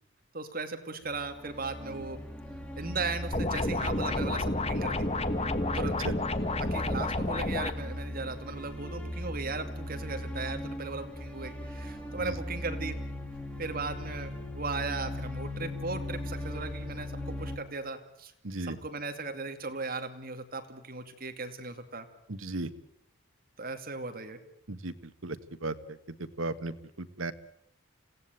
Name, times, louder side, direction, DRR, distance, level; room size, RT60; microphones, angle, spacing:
voice 1, 0.3-2.2 2.8-5.1 5.7-6.0 6.7-13.0 13.6-18.3 18.7-22.1 23.6-24.4, right 3 dB, 45° right, 7 dB, 2.5 m, -37 dB
sound 1, 1.1-17.6, left 1 dB, 5° left, 3.1 m, -38 dB
sound 2, 3.3-7.7, left 2 dB, 30° left, 1.2 m, -30 dB
voice 2, 18.4-18.8 22.3-22.7 24.7-27.3, right 2 dB, 75° right, 11 dB, 1.5 m, -36 dB
27.0 x 17.0 x 9.2 m, 0.77 s
head